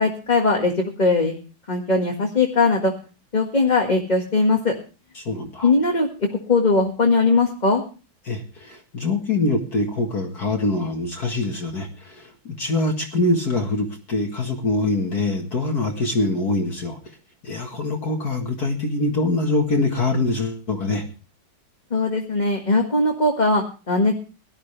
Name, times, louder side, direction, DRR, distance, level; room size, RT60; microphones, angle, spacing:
voice 1, 0.0-1.3 1.7-2.9 3.3-4.7 5.6-6.1 6.5-7.8 21.9-24.1, left 3 dB, 20° left, 1 dB, 1.7 m, -20 dB
voice 2, 5.2-5.7 8.2-17.0 17.4-21.0, left 2 dB, 50° left, 2 dB, 2.1 m, -24 dB
18.0 x 12.5 x 3.3 m, 0.34 s
omnidirectional pair, 2.3 m